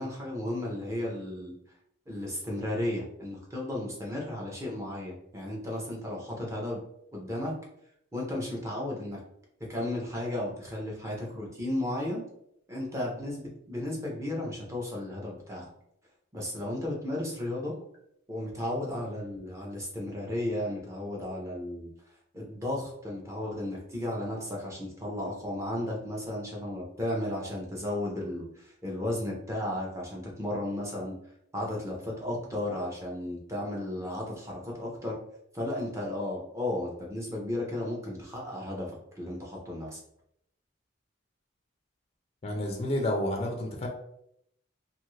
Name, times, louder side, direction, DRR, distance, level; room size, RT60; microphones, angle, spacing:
voice 1, 0.0-1.5 2.1-6.8 7.1-7.5 8.1-9.2 9.7-12.2 12.7-15.7 16.3-17.7 18.3-21.9 22.3-31.1 31.5-35.2 35.5-40.0, left 1 dB, 15° right, -3 dB, 0.6 m, -34 dB
voice 2, 42.4-43.9, left 1 dB, 30° left, 1 dB, 0.4 m, -30 dB
2.6 x 2.5 x 3.1 m, 0.75 s
head